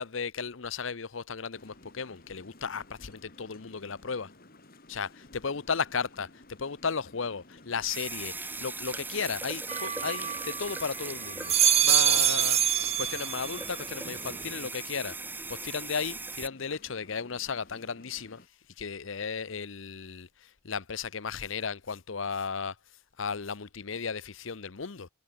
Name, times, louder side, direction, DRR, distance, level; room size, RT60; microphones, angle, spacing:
voice 1, 0.0-4.3 4.9-12.6 13.0-15.1 15.5-18.4 18.8-22.7 23.2-25.1, left 5 dB, 70° left, 0.8 m, -35 dB
sound 1, 1.5-18.5, left 1 dB, 45° left, 4.2 m, -55 dB
sound 2, 7.8-16.5, right 3 dB, 10° right, 1.0 m, -39 dB
sound 3, 9.7-10.8 11.3-13.7 14.1-14.7, right 9 dB, 30° right, 1.2 m, -26 dB
head